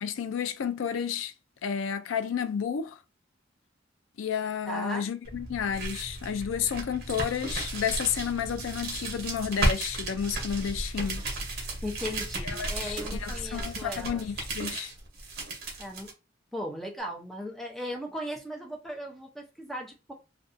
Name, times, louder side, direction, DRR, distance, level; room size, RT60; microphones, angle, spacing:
voice 1, 0.0-1.3 1.6-3.0 4.2-11.2 12.6-14.9, left 7 dB, 80° left, 0.4 m, -31 dB
voice 2, 4.7-5.1 11.8-14.3 15.8-16.1 16.5-20.1, equal, ahead, 0.6 m, -37 dB
sound 1, 5.2-16.1, right 2 dB, 55° right, 0.8 m, -34 dB
2.5 x 2.3 x 2.5 m
head